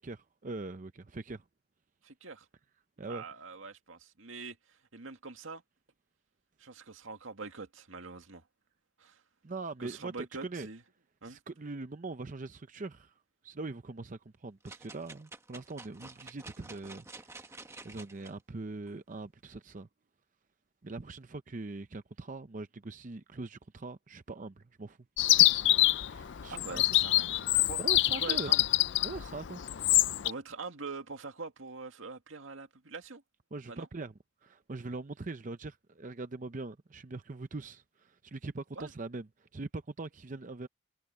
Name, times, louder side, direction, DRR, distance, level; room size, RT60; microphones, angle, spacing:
voice 1, 0.0-1.4 3.0-3.2 9.4-10.7 11.2-13.1 13.4-19.9 20.8-25.0 25.3-25.6 26.1-26.8 27.8-28.5 29.0-29.6 33.5-34.1 34.4-40.7, right 3 dB, 40° right, 0.6 m, -42 dB
voice 2, 2.0-2.5 3.1-5.6 6.6-8.4 9.0-9.2 9.8-10.8 11.2-11.4 26.5-27.8 28.1-28.6 30.2-33.2 33.7-33.9 38.8-38.9, right 4 dB, 85° right, 2.2 m, -44 dB
sound 1, 14.6-18.3 18.9-19.0, right 3 dB, 15° right, 1.1 m, -49 dB
Chirp tweet, 25.2-30.3, left 16 dB, 60° left, 0.4 m, -26 dB
head